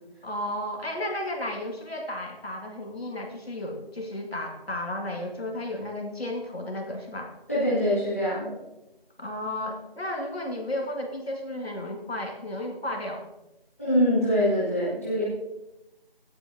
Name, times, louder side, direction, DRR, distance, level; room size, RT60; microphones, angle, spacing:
voice 1, 0.2-7.3 9.2-13.2, left 1 dB, 80° left, 1 dB, 2.1 m, -33 dB
voice 2, 7.5-8.5 13.8-15.2, equal, 15° left, -11 dB, 1.8 m, -24 dB
17.0 x 8.0 x 2.7 m, 0.95 s
figure-of-eight pair, 175°, 30 cm